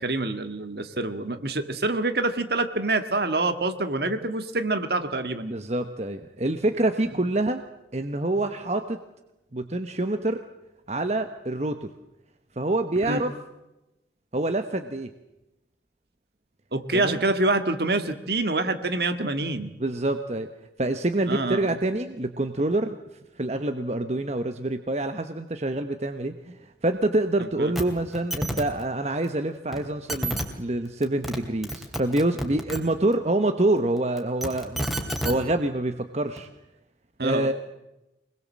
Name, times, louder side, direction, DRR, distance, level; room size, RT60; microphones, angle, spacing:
voice 1, 0.0-5.5 13.1-13.2 16.7-19.7 21.3-21.8 27.4-27.7 37.2-37.5, right 2 dB, 60° right, 9 dB, 1.8 m, -26 dB
voice 2, 5.5-7.6 7.9-9.0 9.5-10.4 10.9-11.9 12.6-13.3 14.3-15.1 16.9-17.2 19.8-20.5 20.8-23.0 23.4-34.9 35.2-36.5 37.2-37.5, right 2 dB, 40° right, 8 dB, 1.1 m, -26 dB
sound 1, 27.8-27.9 28.1-28.6 29.7-29.8 30.1-30.4 31.0-31.4 31.6-32.8 34.2-35.3 36.4-36.5, right 1 dB, ahead, 2.9 m, -29 dB
24.5 x 21.0 x 7.5 m, 0.95 s
head